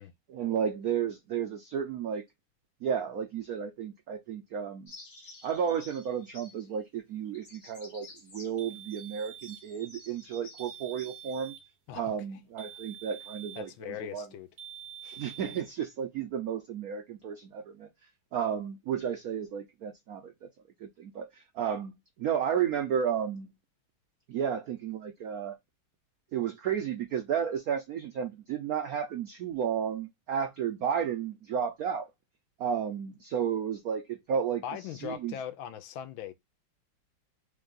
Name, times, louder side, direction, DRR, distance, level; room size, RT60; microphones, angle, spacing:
voice 1, 0.3-2.2 2.8-4.9 5.4-11.5 11.9-14.3 15.2-17.9 18.3-20.3 20.8-23.5 24.3-25.6 26.3-32.1 32.6-34.6 35.0-35.3, right 8 dB, 90° right, 0.7 m, -32 dB
sound 1, 4.9-6.8 7.3-8.5 8.9-11.5, left 1 dB, 40° left, 2.1 m, -51 dB
sound 2, 8.6-9.7 10.6-11.7 12.6-13.7 14.6-15.7, right 9 dB, 55° right, 1.1 m, -47 dB
voice 2, 13.6-14.5 15.0-15.2 34.6-36.3, left 9 dB, 75° left, 1.4 m, -40 dB
3.5 x 3.3 x 3.8 m
omnidirectional pair, 2.3 m